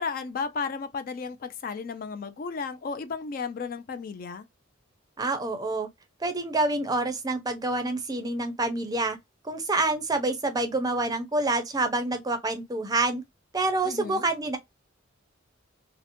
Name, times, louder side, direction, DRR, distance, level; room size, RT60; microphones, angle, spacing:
voice 1, 0.0-4.5 13.8-14.3, left 5 dB, 45° left, 0.3 m, -34 dB
voice 2, 5.2-5.9 6.2-9.2 9.4-13.2 13.5-14.6, right 2 dB, 20° right, 0.5 m, -27 dB
2.8 x 2.1 x 2.5 m
head